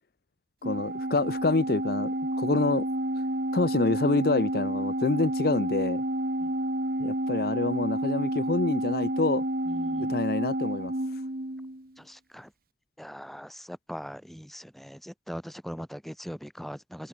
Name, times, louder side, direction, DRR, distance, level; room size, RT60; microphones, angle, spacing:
voice 1, 0.6-2.9 3.5-6.0 7.0-9.4 10.0-10.9, left 3 dB, 55° left, 0.6 m, -27 dB
Organ, 0.6-11.9, right 1 dB, 55° right, 2.0 m, -30 dB
voice 2, 9.7-10.1 12.0-12.5 13.0-17.1, equal, ahead, 3.5 m, -41 dB
head